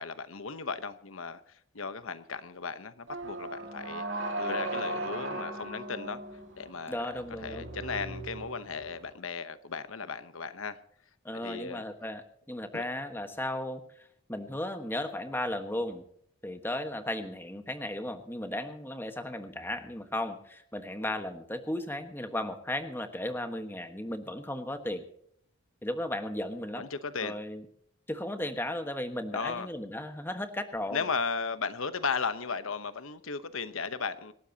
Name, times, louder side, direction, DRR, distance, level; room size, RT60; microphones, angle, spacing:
voice 1, 0.0-1.4 1.7-6.2 6.6-10.8 11.4-11.8 12.7-12.9 26.8-27.4 29.3-29.7 30.9-34.3, left 5 dB, 75° left, 1.0 m, -36 dB
sound 1, 3.1-9.1, right 1 dB, 60° right, 2.8 m, -37 dB
voice 2, 6.9-7.6 11.2-16.0 16.4-25.0 25.8-26.9 27.2-27.6 28.1-31.1, left 1 dB, 10° left, 1.4 m, -35 dB
26.5 x 12.5 x 2.9 m
head